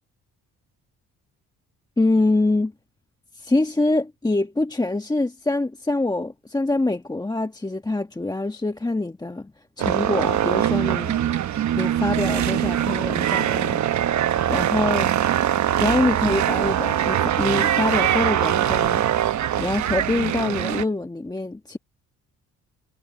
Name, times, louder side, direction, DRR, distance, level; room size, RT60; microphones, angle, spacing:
voice 1, 2.0-2.7 3.3-9.5 9.8-11.5 11.8-13.8 14.5-15.1 15.8-19.0 19.6-21.8, left 2 dB, 10° left, 1.3 m, -25 dB
sound 1, 9.8-20.8, right 11 dB, 60° right, 1.0 m, -22 dB
cardioid pair, 95°, 32 cm